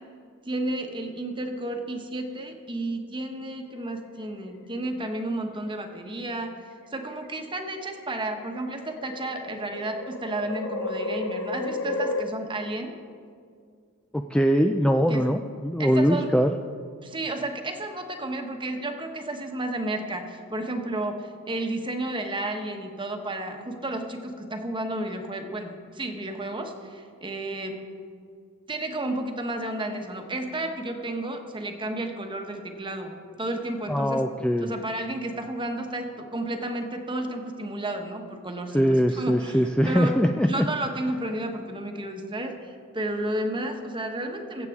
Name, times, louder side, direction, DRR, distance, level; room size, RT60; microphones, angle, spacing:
voice 1, 0.4-6.6 6.9-13.0 15.1-15.3 15.8-16.3 17.0-27.8 28.7-34.3 34.6-44.7, right 1 dB, 20° right, 4 dB, 1.1 m, -32 dB
sound 1, 3.6-4.5 5.7-6.1 7.0-12.2, left 2 dB, 60° left, 1.0 m, -33 dB
voice 2, 14.1-16.5 33.9-34.7 38.7-40.7, equal, 5° left, 4 dB, 0.3 m, -22 dB
22.0 x 8.2 x 3.6 m, 2.1 s
head